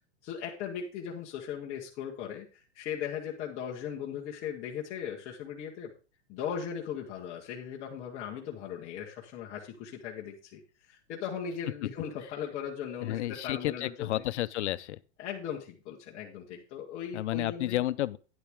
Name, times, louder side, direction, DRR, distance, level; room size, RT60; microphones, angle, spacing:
voice 1, 0.2-5.9 6.3-14.2 15.2-17.8, left 8 dB, 20° left, 1.0 m, -38 dB
voice 2, 13.0-15.0 17.1-18.2, left 14 dB, 85° left, 0.7 m, -31 dB
9.8 x 9.0 x 3.5 m
supercardioid pair, 175°, 34 cm